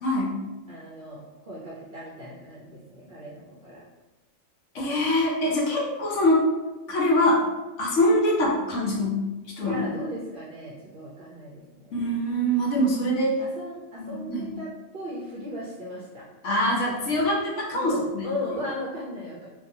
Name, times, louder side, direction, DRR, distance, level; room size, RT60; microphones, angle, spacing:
voice 1, 0.0-0.4 4.7-6.5 6.9-7.4 7.8-9.2 9.6-9.8 11.9-13.4 14.0-14.5 16.4-18.3, left 1 dB, 70° left, -3 dB, 1.0 m, -24 dB
voice 2, 0.7-3.8 9.6-12.0 13.4-16.3 17.7-19.5, left 1 dB, 55° right, -6 dB, 0.7 m, -37 dB
2.7 x 2.3 x 2.7 m, 1.1 s
omnidirectional pair, 1.4 m